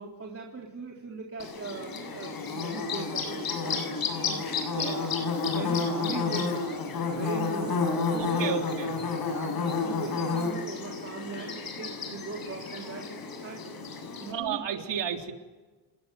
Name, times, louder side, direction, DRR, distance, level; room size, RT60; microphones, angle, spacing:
voice 1, 0.0-5.1 5.5-8.7 9.3-9.5 9.8-13.1 13.4-13.6 14.2-14.6, right 4 dB, 30° right, -1 dB, 3.8 m, -40 dB
Bird / Buzz, 1.4-14.3, left 4 dB, 50° left, 7.3 m, -31 dB
voice 2, 8.1-9.0 14.3-15.3, right 8 dB, 75° right, 4 dB, 3.5 m, -32 dB
29.5 x 21.5 x 9.3 m, 1.3 s
cardioid pair, 140°, 44 cm